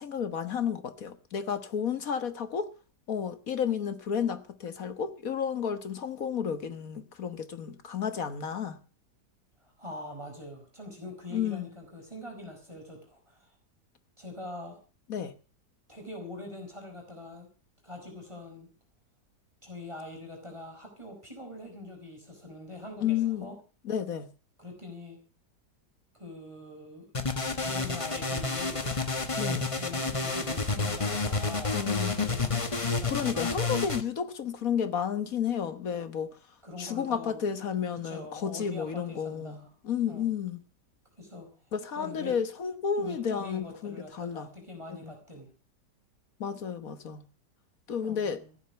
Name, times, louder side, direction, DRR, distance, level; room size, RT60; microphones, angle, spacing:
voice 1, 0.0-2.7 3.1-8.8 11.3-11.7 15.1-15.3 23.0-23.5 23.8-24.3 29.3-29.7 31.7-32.5 33.1-36.4 36.8-39.6 39.8-40.6 41.7-44.5 44.9-45.1 46.4-47.2 47.9-48.4, left 7 dB, 60° left, 1.6 m, -32 dB
voice 2, 9.6-13.5 14.2-14.8 15.9-17.5 17.8-18.7 19.6-23.6 24.6-25.2 26.1-27.1 27.6-28.9 29.7-31.8 32.9-33.6 36.6-37.4 38.0-39.7 40.1-40.3 41.2-41.5 41.9-42.3 43.0-45.5 48.0-48.5, left 1 dB, 15° right, 5.3 m, -43 dB
sound 1, 27.1-34.0, left 3 dB, 20° left, 1.2 m, -30 dB
15.5 x 11.0 x 6.8 m
omnidirectional pair, 1.8 m